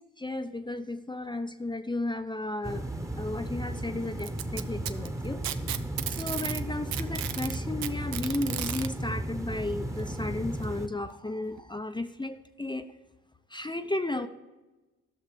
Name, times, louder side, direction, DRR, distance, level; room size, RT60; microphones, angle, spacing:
voice 1, 0.0-2.8 3.2-5.4 6.1-12.9 13.5-14.3, left 2 dB, 15° left, 8 dB, 0.7 m, -34 dB
sound 1, 2.6-10.9, right 1 dB, 10° right, 1.2 m, -35 dB
Packing tape duct tape, 4.2-6.6 6.9-8.9 10.0-10.1 10.6-10.7 11.6-11.7, right 12 dB, 75° right, 0.7 m, -34 dB
13.0 x 6.5 x 6.6 m, 1.1 s
hypercardioid pair, 50°, 36 cm